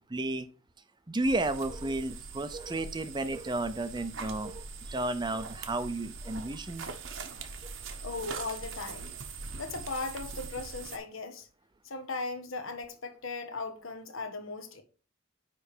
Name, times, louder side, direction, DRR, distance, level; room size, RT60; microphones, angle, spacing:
voice 1, 0.1-0.5 1.1-6.9 7.6-7.7, right 2 dB, 20° right, 0.6 m, -33 dB
sound 1, 1.2-11.0, right 4 dB, 60° right, 1.0 m, -42 dB
voice 2, 8.0-9.1 9.6-11.5 11.8-14.8, left 3 dB, 70° left, 1.2 m, -38 dB
9.6 x 3.4 x 4.9 m
head